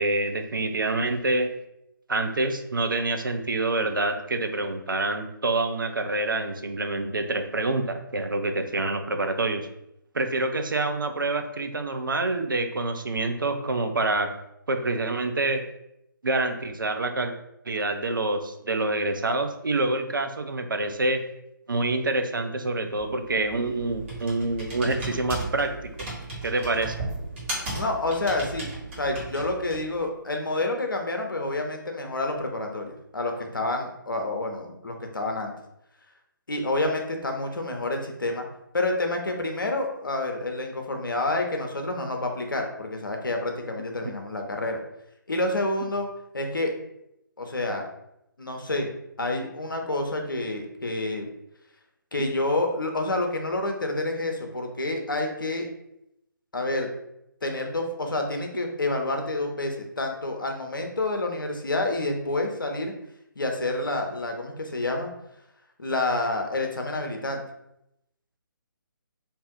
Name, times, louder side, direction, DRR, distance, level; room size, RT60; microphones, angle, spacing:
voice 1, 0.0-1.5 2.1-9.7 10.1-14.3 14.7-15.6 16.2-17.3 17.6-21.2 21.7-26.1 26.4-27.0 52.2-52.3, right 2 dB, 70° right, 7 dB, 0.5 m, -27 dB
Computer keyboard, 23.0-30.0, right 2 dB, 35° right, 1.3 m, -36 dB
voice 2, 27.7-28.7 29.0-35.5 36.5-38.4 38.7-44.8 45.3-46.1 46.3-46.7 47.4-47.8 48.4-48.9 49.2-51.3 52.1-55.7 56.5-56.9 57.4-62.9 63.4-65.1 65.8-67.4, left 2 dB, 70° left, 3 dB, 0.7 m, -28 dB
2.7 x 2.5 x 3.7 m, 0.82 s
figure-of-eight pair, 145°, 11 cm